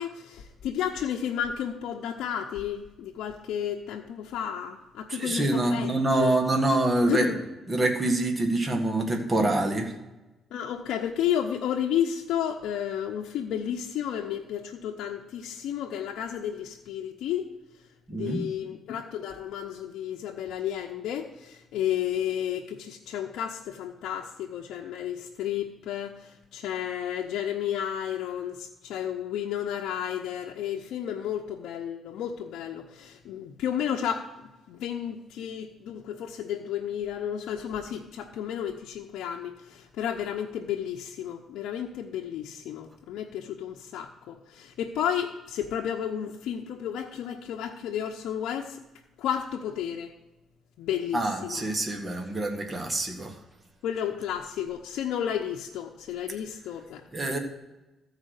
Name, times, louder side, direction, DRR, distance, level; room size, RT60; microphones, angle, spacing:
voice 1, 0.0-5.9 6.2-6.3 7.1-7.4 10.5-17.5 18.1-34.3 34.7-48.8 49.2-50.1 50.8-51.6 53.8-57.0, left 9 dB, 85° left, 0 dB, 0.7 m, -32 dB
voice 2, 5.1-7.3 7.7-9.9 18.1-18.4 51.1-53.4 57.1-57.4, right 2 dB, 25° right, 3 dB, 1.7 m, -26 dB
14.5 x 4.9 x 6.5 m, 1.0 s
cardioid pair, 90°, 0 cm